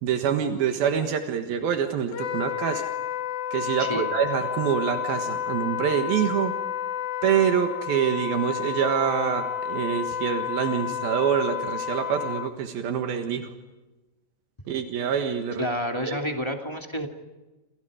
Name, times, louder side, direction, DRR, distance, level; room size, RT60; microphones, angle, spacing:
voice 1, 0.0-2.9 3.5-6.6 7.2-13.5 14.7-15.7 16.0-16.2, right 8 dB, 80° right, 6 dB, 3.3 m, -26 dB
Wind instrument woodwind instrument, 2.1-12.5, left 8 dB, 75° left, 3.2 m, -31 dB
voice 2, 15.6-17.1, equal, 10° left, 3 dB, 1.8 m, -29 dB
29.0 x 28.5 x 5.0 m, 1.1 s
omnidirectional pair, 4.3 m